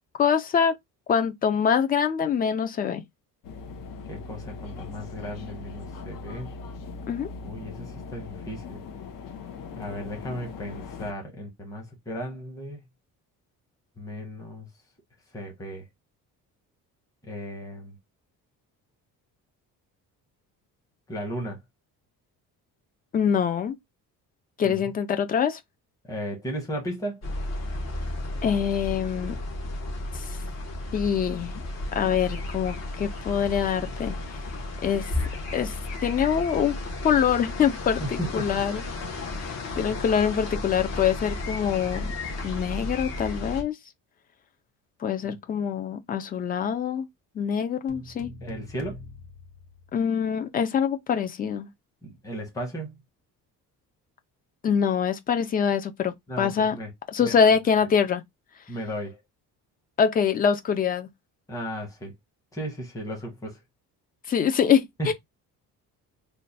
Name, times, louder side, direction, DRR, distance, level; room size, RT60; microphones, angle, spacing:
voice 1, 0.2-0.8 1.1-3.0 7.1-7.3 23.1-23.8 24.6-25.6 28.4-29.4 30.1-30.2 30.9-31.6 31.9-34.2 34.8-35.0 35.5-35.8 36.0-36.8 37.0-38.8 39.8-42.1 42.4-43.8 45.0-47.1 47.4-48.3 49.9-51.7 54.6-56.8 57.1-58.2 60.0-61.1 64.3-65.1, left 7 dB, 25° left, 0.4 m, -24 dB
sound 1, 3.4-11.1, left 4 dB, 65° left, 0.8 m, -40 dB
voice 2, 4.1-6.5 7.4-8.8 9.8-12.8 14.0-14.7 15.3-15.8 17.3-18.0 21.1-21.6 24.6-24.9 26.1-27.2 38.0-38.6 45.2-45.3 48.4-49.0 52.0-52.9 56.3-56.9 57.2-57.5 57.8-57.9 58.7-59.2 61.5-62.1 62.5-63.6 65.0-65.1, equal, 10° left, 1.0 m, -35 dB
sound 2, 27.2-43.6, left 2 dB, 50° left, 1.2 m, -33 dB
sound 3, 47.9-50.4, left 1 dB, 80° left, 1.2 m, -44 dB
3.1 x 2.2 x 4.0 m
cardioid pair, 165°, 35 cm